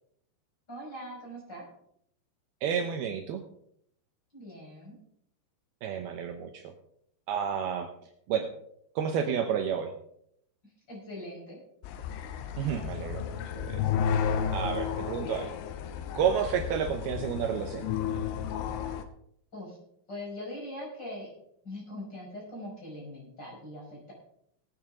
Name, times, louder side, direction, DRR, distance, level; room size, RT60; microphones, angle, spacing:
voice 1, 0.7-1.7 4.3-5.0 10.9-11.6 19.5-19.8 20.1-21.3 21.6-24.1, left 1 dB, 20° left, -4 dB, 5.7 m, -41 dB
voice 2, 2.6-3.4 5.8-6.7 7.3-7.9 8.3-8.5 9.0-9.9 12.6-13.8 14.5-15.5 16.1-17.9, right 8 dB, 90° right, 5 dB, 2.2 m, -30 dB
sound 1, 11.8-19.0, left 8 dB, 85° left, 3.3 m, -32 dB
19.0 x 8.9 x 3.7 m, 0.70 s
omnidirectional pair, 5.7 m